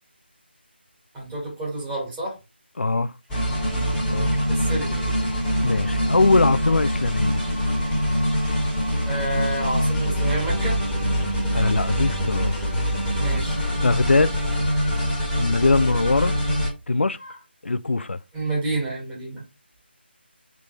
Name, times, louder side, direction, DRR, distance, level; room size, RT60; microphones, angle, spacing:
voice 1, 1.1-2.4 4.5-5.0 9.1-10.8 13.2-13.7 17.2-17.4 18.3-19.4, right 2 dB, 10° right, 1.9 m, -29 dB
voice 2, 2.8-3.1 3.8-4.3 5.6-7.4 11.5-12.5 13.8-14.3 15.4-16.3 16.9-17.2 17.6-18.2, left 3 dB, 90° left, 0.4 m, -21 dB
sound 1, 3.3-16.7, equal, 5° left, 1.5 m, -24 dB
3.7 x 3.4 x 3.3 m
figure-of-eight pair, 165°, 6 cm